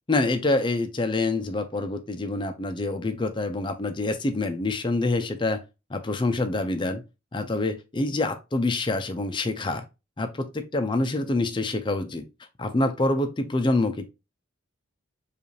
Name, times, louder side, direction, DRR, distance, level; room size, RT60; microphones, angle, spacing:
voice 1, 0.1-5.6 5.9-7.0 7.3-9.8 10.2-12.2 12.6-14.1, left 2 dB, 25° left, 0.4 m, -26 dB
5.0 x 2.5 x 3.1 m
head